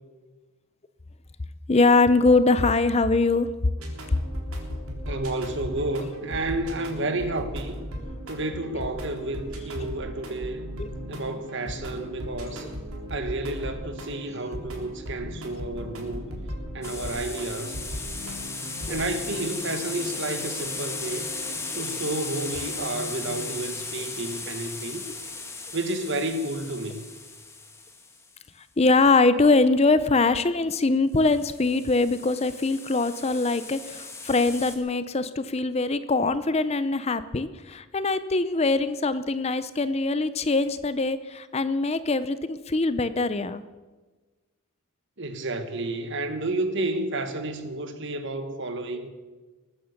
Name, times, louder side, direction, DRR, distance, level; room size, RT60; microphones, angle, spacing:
voice 1, 1.7-3.5 9.8-9.9 10.8-10.9 18.9-19.0 28.8-43.6 48.9-49.0, left 3 dB, 30° left, 0.5 m, -23 dB
sound 1, 3.8-23.5, equal, 80° right, 3.5 m, -38 dB
voice 2, 5.0-7.8 8.3-10.6 11.1-12.7 13.1-16.3 16.7-17.8 18.9-21.2 21.7-25.1 25.7-27.0 45.2-49.1, right 2 dB, 55° right, 1.5 m, -31 dB
sound 2, 16.8-28.3 31.2-34.8, left 3 dB, 10° left, 1.3 m, -36 dB
20.5 x 9.6 x 6.6 m
head